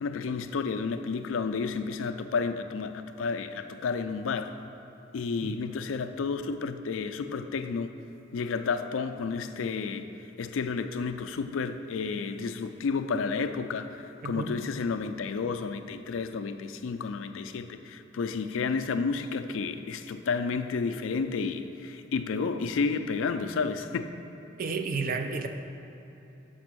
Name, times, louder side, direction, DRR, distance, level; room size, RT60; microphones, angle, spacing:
voice 1, 0.0-4.6 5.1-7.9 8.3-10.1 10.4-24.1, left 5 dB, 85° left, 9 dB, 0.4 m, -31 dB
voice 2, 24.6-25.5, right 4 dB, 45° right, 7 dB, 0.4 m, -31 dB
5.8 x 5.1 x 6.1 m, 2.9 s
head